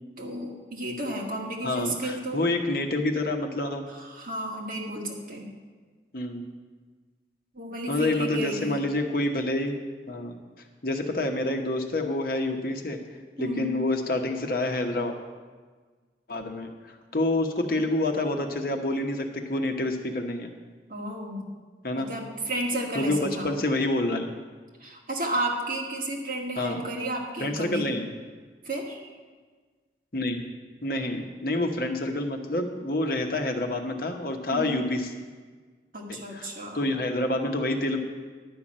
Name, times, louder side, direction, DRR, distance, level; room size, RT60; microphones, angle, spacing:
voice 1, 0.2-2.5 3.9-5.5 7.5-8.7 13.4-13.7 20.9-21.5 22.0-23.5 24.8-27.9 28.6-29.0 34.5-34.8 35.9-36.8, right 1 dB, 50° right, -2 dB, 2.0 m, -32 dB
voice 2, 1.6-3.8 6.1-6.5 7.9-9.7 10.1-10.4 10.8-13.0 13.4-15.2 16.3-20.5 21.8-22.1 22.9-24.3 26.6-26.8 27.4-28.1 30.1-30.4 30.8-35.0 36.3-38.0, left 2 dB, 55° left, 4 dB, 1.0 m, -28 dB
11.0 x 5.8 x 8.7 m, 1.4 s
head